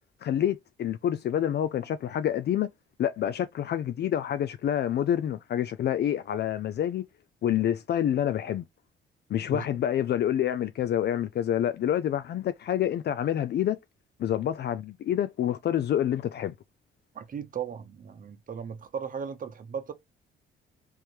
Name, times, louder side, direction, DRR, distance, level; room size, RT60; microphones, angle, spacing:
voice 1, 0.2-2.7 3.0-7.0 7.4-8.6 9.3-13.8 14.2-16.5, left 10 dB, 55° left, 0.4 m, -27 dB
voice 2, 17.1-19.9, right 7 dB, 45° right, 0.8 m, -36 dB
3.6 x 3.1 x 4.4 m
cardioid pair, 90°, 20 cm